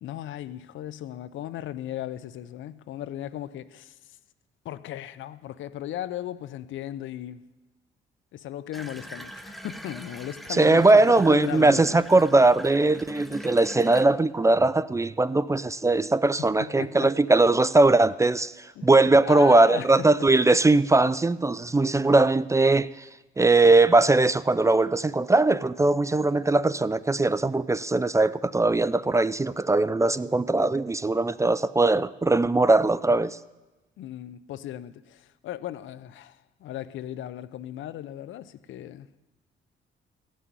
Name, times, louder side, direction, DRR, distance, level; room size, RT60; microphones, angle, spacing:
voice 1, 0.0-4.2 4.6-7.4 8.3-12.2 16.4-17.1 18.8-19.0 19.2-20.3 34.0-39.2, left 12 dB, 75° left, 0.7 m, -36 dB
Water tap faucet / Bathtub (filling or washing), 8.7-14.0, equal, ahead, 0.9 m, -42 dB
voice 2, 10.5-23.1 23.4-33.4, right 2 dB, 15° right, 0.4 m, -20 dB
16.0 x 6.3 x 9.4 m
cardioid pair, 90°, 20 cm